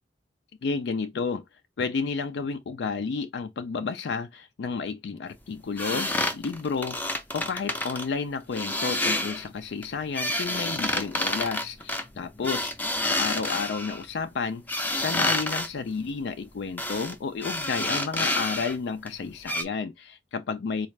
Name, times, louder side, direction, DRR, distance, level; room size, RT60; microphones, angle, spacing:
voice 1, 0.6-1.4 1.8-12.7 13.0-20.9, left 5 dB, 80° left, 0.4 m, -31 dB
sound 1, 5.8-8.1 8.5-9.5 9.8-14.0 14.7-15.7 16.8-17.1 17.4-18.8 19.1-19.2 19.5-19.6, left 1 dB, 10° left, 0.5 m, -29 dB
4.0 x 2.4 x 3.2 m
head